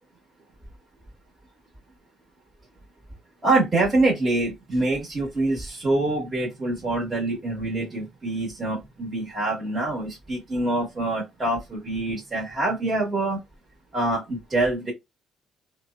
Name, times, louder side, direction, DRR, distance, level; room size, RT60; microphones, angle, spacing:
voice 1, 3.4-13.4 13.9-14.9, right 2 dB, 30° right, 1.1 m, -25 dB
3.1 x 2.0 x 2.3 m
cardioid pair, 90°, 0 cm